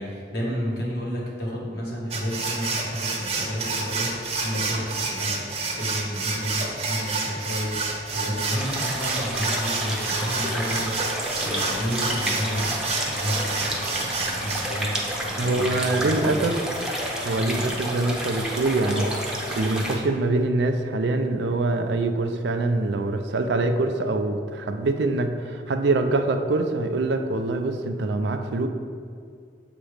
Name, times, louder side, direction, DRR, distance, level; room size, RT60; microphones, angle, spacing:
voice 1, 0.0-16.5 17.4-17.6, equal, 60° left, -3 dB, 1.4 m, -31 dB
sound 1, 2.1-14.6, right 3 dB, 35° right, 0.8 m, -29 dB
sound 2, 8.5-20.0, equal, 5° right, 0.7 m, -30 dB
voice 2, 15.4-16.6 17.2-19.1 19.6-28.7, right 2 dB, 65° right, 6 dB, 0.4 m, -24 dB
7.3 x 3.0 x 5.0 m, 2.2 s
head